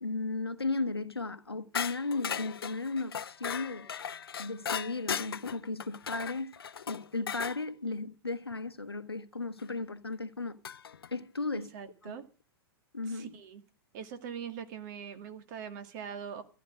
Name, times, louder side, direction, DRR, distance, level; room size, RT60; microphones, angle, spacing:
voice 1, 0.0-3.9 4.4-6.5 6.9-10.6 11.1-11.7 12.0-12.2 12.9-13.3, left 3 dB, 90° left, 1.0 m, -35 dB
sound 1, 1.7-7.6 9.6-9.7 10.6-11.1, left 7 dB, 70° left, 0.7 m, -37 dB
voice 2, 11.5-12.3 13.1-13.6 13.9-16.4, right 7 dB, 50° right, 2.1 m, -42 dB
14.5 x 10.5 x 6.5 m
figure-of-eight pair, 105°, 13 cm